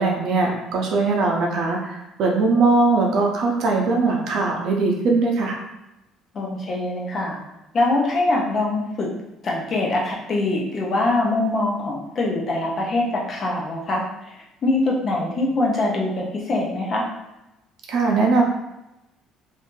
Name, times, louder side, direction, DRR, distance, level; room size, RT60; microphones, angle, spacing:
voice 1, 0.0-5.6 17.9-18.4, right 3 dB, 55° right, 0 dB, 0.7 m, -20 dB
voice 2, 6.3-7.4 7.7-9.1 9.4-14.3 14.6-17.0, left 2 dB, 30° left, -2 dB, 0.7 m, -23 dB
2.7 x 2.6 x 3.7 m, 0.92 s
cardioid pair, 165°, 0 cm